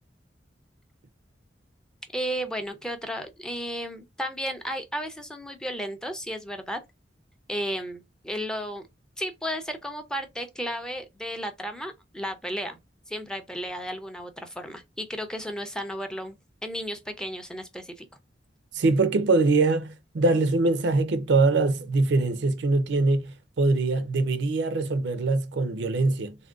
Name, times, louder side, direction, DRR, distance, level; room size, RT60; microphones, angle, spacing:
voice 1, 2.1-6.8 7.5-8.9 9.2-12.8 13.1-16.4 16.6-18.1, equal, 5° left, 0.4 m, -33 dB
voice 2, 18.7-26.4, right 3 dB, 70° right, 0.4 m, -23 dB
3.5 x 2.1 x 2.3 m
head